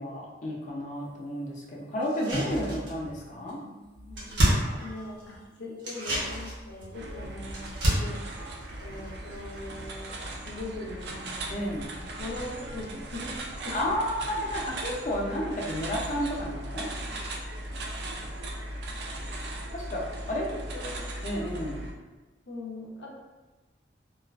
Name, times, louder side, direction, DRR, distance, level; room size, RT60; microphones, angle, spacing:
voice 1, 0.0-3.6 11.5-11.9 13.7-16.9 19.7-20.5 21.2-21.9, equal, 45° left, -3 dB, 0.5 m, -32 dB
sound 1, 2.0-3.2 3.5-3.6 3.8-5.4 5.8-9.5 9.8-9.9, right 1 dB, 85° right, 0.8 m, -30 dB
voice 2, 3.3-8.2 8.8-10.1 10.4-11.8 12.2-13.7 19.7-19.8 20.1-21.1 22.5-23.1, left 2 dB, 90° left, -3 dB, 0.6 m, -41 dB
sound 2, 6.9-21.9, right 1 dB, 65° right, 0.3 m, -38 dB
2.3 x 2.3 x 2.3 m, 1.2 s
head